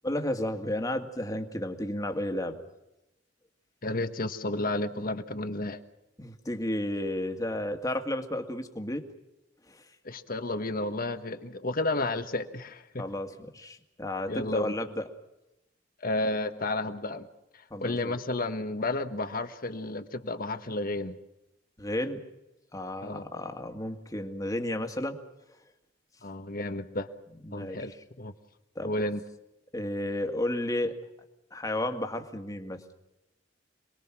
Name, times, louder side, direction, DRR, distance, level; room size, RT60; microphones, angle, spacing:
voice 1, 0.0-2.6 6.2-9.1 9.7-9.8 13.0-15.0 17.7-18.2 21.8-22.2 22.7-25.2 27.4-27.8 28.8-29.1 29.7-31.0 31.5-32.8, left 1 dB, 20° left, 5 dB, 2.0 m, -32 dB
voice 2, 3.8-5.8 10.0-13.0 14.3-14.7 16.0-17.3 17.8-21.2 23.0-23.2 26.2-27.1 27.5-28.3 28.8-29.2, left 2 dB, 50° left, 8 dB, 1.5 m, -32 dB
27.5 x 21.0 x 6.1 m, 0.92 s
head